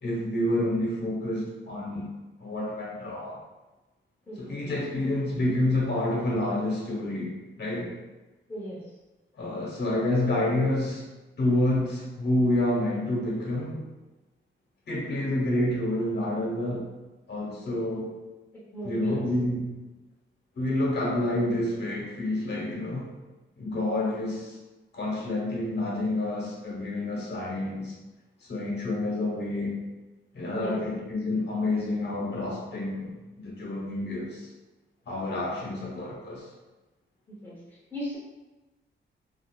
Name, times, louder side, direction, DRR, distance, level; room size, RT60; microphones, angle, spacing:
voice 1, 0.0-2.0 2.4-3.4 4.4-7.3 7.6-7.9 9.4-11.0 11.4-13.8 14.9-16.9 17.3-18.1 18.8-19.7 20.6-23.1 23.6-24.6 24.9-27.9 28.4-29.8 30.3-33.1 33.4-34.5 35.1-36.5, left 1 dB, 55° left, -4 dB, 1.0 m, -28 dB
voice 2, 4.3-4.7 8.5-8.8 18.5-19.2 30.5-30.8 37.3-37.6 37.9-38.2, equal, 10° left, -8 dB, 0.8 m, -36 dB
3.7 x 2.5 x 2.4 m, 1.1 s
wide cardioid pair, 165°, 21 cm